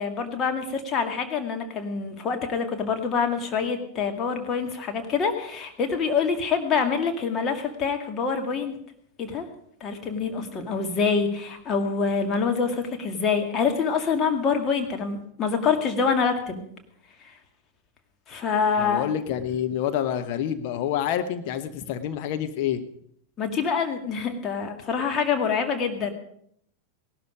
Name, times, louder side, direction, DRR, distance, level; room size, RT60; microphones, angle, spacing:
voice 1, 0.0-8.7 9.2-9.5 9.8-16.6 17.2-17.3 18.3-19.1 23.4-26.1, left 5 dB, 30° left, 4 dB, 2.3 m, -26 dB
voice 2, 18.8-22.8, left 10 dB, 45° left, 8 dB, 1.2 m, -27 dB
17.5 x 12.0 x 5.1 m, 0.68 s
figure-of-eight pair, 90°, 0 cm